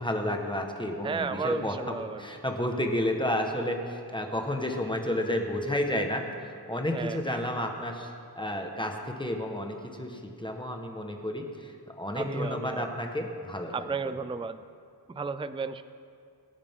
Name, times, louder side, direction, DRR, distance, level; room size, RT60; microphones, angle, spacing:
voice 1, 0.0-13.9, left 1 dB, 10° left, 2 dB, 1.4 m, -31 dB
voice 2, 1.0-2.2 6.9-7.4 12.2-12.9 13.7-14.6 15.1-15.8, right 4 dB, 15° right, 12 dB, 0.4 m, -33 dB
24.0 x 9.9 x 3.7 m, 2.3 s
wide cardioid pair, 95°, 40 cm